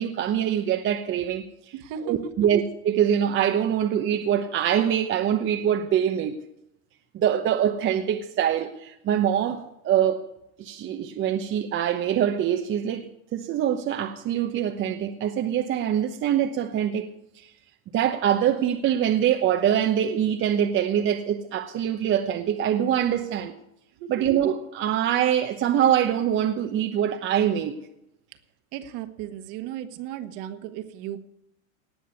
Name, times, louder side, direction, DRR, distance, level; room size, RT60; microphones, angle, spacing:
voice 1, 0.0-1.4 2.1-6.4 7.1-10.2 10.6-13.0 13.3-17.1 17.9-23.5 24.1-27.8, right 10 dB, 30° right, 1.0 m, -24 dB
voice 2, 1.7-2.3 24.0-24.3 28.7-31.2, right 10 dB, 45° right, 1.6 m, -36 dB
18.5 x 6.3 x 9.6 m
hypercardioid pair, 120°, 42 cm